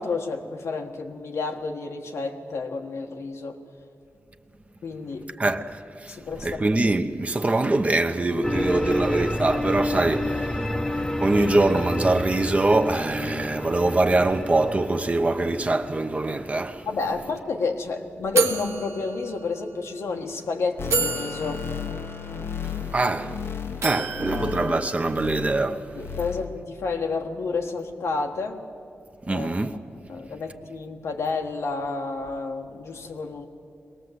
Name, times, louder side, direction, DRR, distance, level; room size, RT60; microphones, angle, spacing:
voice 1, 0.0-3.6 4.8-5.3 6.1-6.8 16.9-21.6 24.0-24.1 24.3-24.8 25.9-28.6 29.3-29.5 30.1-33.5, left 4 dB, 90° left, 1.5 m, -30 dB
voice 2, 5.4-16.9 22.6-23.5 23.8-25.9 29.2-29.8, right 2 dB, 30° right, 0.9 m, -24 dB
sound 1, 8.4-17.3, left 1 dB, 15° left, 0.9 m, -30 dB
sound 2, 17.0-17.1 17.4-17.6 18.4-19.8 20.4-20.5 20.9-23.3 23.8-25.5, right 5 dB, 85° right, 1.3 m, -30 dB
sound 3, 20.8-25.7 25.9-26.5 26.9-27.0, left 7 dB, 65° left, 0.9 m, -34 dB
22.5 x 18.5 x 8.0 m
wide cardioid pair, 85°, 5 cm